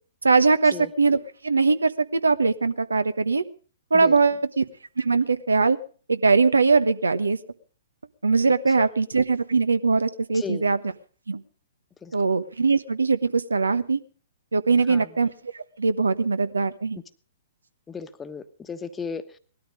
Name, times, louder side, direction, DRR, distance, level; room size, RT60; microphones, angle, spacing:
voice 1, 0.2-3.4 3.9-4.6 5.0-5.8 6.1-7.4 8.2-10.8 11.3-11.4 12.1-14.0 14.5-15.3 15.8-17.0, right 4 dB, 80° right, 13 dB, 1.2 m, -21 dB
voice 2, 10.3-10.6 12.0-12.2 14.9-15.2 17.9-19.4, left 5 dB, 15° left, 10 dB, 1.2 m, -36 dB
19.5 x 13.0 x 5.2 m, 0.42 s
figure-of-eight pair, 115°, 0 cm